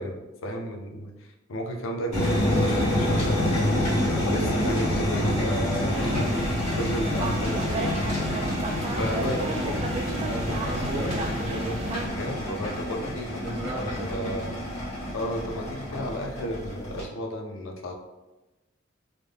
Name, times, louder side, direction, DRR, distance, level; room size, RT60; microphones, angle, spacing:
voice 1, 0.0-3.8 4.2-6.5 6.7-8.0 8.9-9.4 12.1-14.6 15.1-17.9, equal, 80° left, 2 dB, 0.5 m, -33 dB
sound 1, 2.1-17.0, left 1 dB, 35° left, 1.3 m, -27 dB
sound 2, 5.9-12.1, right 2 dB, 30° right, 0.3 m, -33 dB
voice 2, 9.0-9.8 10.2-11.9 13.4-14.4, right 1 dB, 65° right, -5 dB, 0.9 m, -34 dB
3.6 x 2.1 x 3.3 m, 1.1 s
head